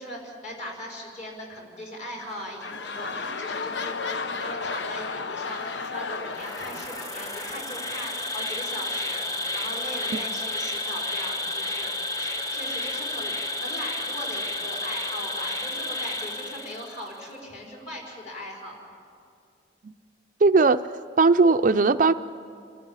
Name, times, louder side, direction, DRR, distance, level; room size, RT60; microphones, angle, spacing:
voice 1, 0.0-9.3 9.5-11.9 12.2-18.8, left 1 dB, 40° left, -2 dB, 5.1 m, -39 dB
sound 1, 2.1-8.5 9.2-9.3, left 4 dB, 80° left, 0.8 m, -34 dB
Insect, 6.3-17.1, left 1 dB, 20° left, 1.2 m, -31 dB
voice 2, 20.4-20.8 21.2-22.1, right 3 dB, 45° right, 10 dB, 0.5 m, -18 dB
29.0 x 13.0 x 8.9 m, 2.3 s
head